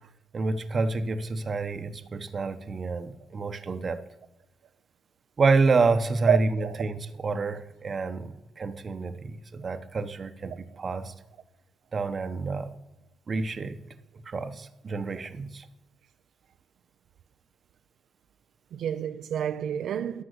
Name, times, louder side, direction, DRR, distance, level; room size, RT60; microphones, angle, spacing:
voice 1, 0.3-4.0 5.4-11.1 11.9-12.7 13.3-13.8 14.3-15.7, right 3 dB, 40° right, 0.9 m, -28 dB
voice 2, 6.3-6.8 18.7-20.2, right 8 dB, 70° right, 0.5 m, -28 dB
12.0 x 5.8 x 7.9 m
cardioid pair, 90°, 0 cm